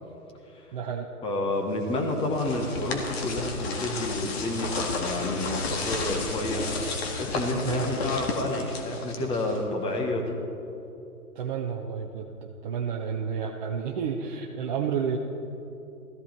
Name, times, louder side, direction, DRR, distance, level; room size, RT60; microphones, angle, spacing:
voice 1, 0.7-1.1 7.6-7.9 11.4-15.2, right 7 dB, 30° right, 0 dB, 0.8 m, -31 dB
voice 2, 1.2-10.4, left 1 dB, 10° left, 2 dB, 1.2 m, -30 dB
sound 1, 1.9-9.7, left 3 dB, 40° left, 1.9 m, -32 dB
16.5 x 14.0 x 4.4 m, 2.9 s
hypercardioid pair, 135°, 46 cm